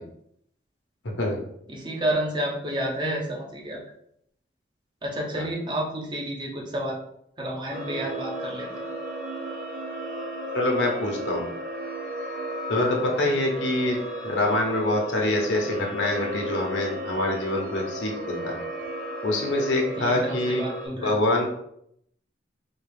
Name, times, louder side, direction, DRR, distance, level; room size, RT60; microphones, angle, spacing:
voice 1, 1.0-1.4 5.3-5.5 10.5-11.4 12.7-14.0 14.2-18.5 19.2-20.6 21.0-21.5, left 1 dB, 85° left, 0 dB, 1.0 m, -25 dB
voice 2, 1.7-3.8 5.0-7.0 7.4-8.7 20.0-21.2, right 1 dB, 25° right, -1 dB, 0.6 m, -30 dB
sound 1, 7.7-20.9, right 1 dB, 50° right, 1.3 m, -34 dB
4.2 x 2.4 x 3.4 m, 0.72 s
head